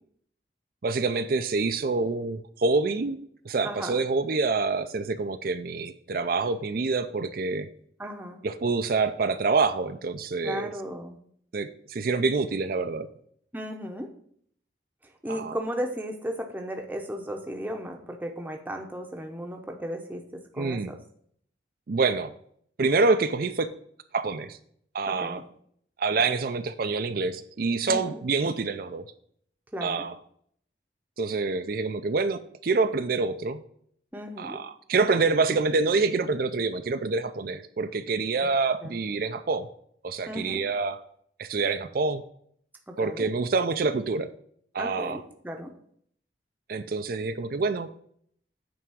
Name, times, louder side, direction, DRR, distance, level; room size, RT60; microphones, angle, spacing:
voice 1, 0.8-3.2 3.5-7.7 8.4-10.7 11.5-13.1 15.3-15.6 20.6-20.9 21.9-22.3 22.8-23.7 24.1-24.6 24.9-25.4 26.0-29.0 29.8-30.1 31.2-33.6 34.4-39.7 40.0-41.0 41.4-42.2 43.0-44.3 44.7-45.2 46.7-47.9, right 4 dB, 55° right, 10 dB, 0.5 m, -26 dB
voice 2, 3.6-4.1 8.0-8.4 10.4-11.2 13.5-14.1 15.0-21.0 25.1-25.4 27.9-28.2 29.7-30.0 34.1-34.6 38.8-39.0 40.3-40.6 42.9-43.3 44.8-45.7, equal, 10° right, 3 dB, 0.8 m, -35 dB
9.0 x 3.5 x 6.2 m, 0.65 s
head